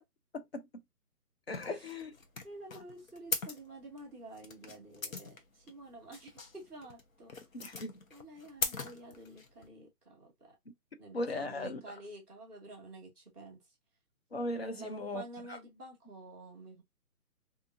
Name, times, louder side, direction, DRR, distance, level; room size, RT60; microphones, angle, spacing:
voice 1, 0.3-0.7 1.5-2.1 7.5-7.9 11.1-11.8 14.3-15.2 15.5-15.6, left 2 dB, 45° left, 0.5 m, -37 dB
sound 1, 1.5-9.7, left 4 dB, 60° left, 0.8 m, -41 dB
voice 2, 2.4-7.3 8.1-10.5 11.0-13.6 14.8-16.8, right 1 dB, 5° left, 1.0 m, -50 dB
2.7 x 2.6 x 2.4 m
hypercardioid pair, 175°, 46 cm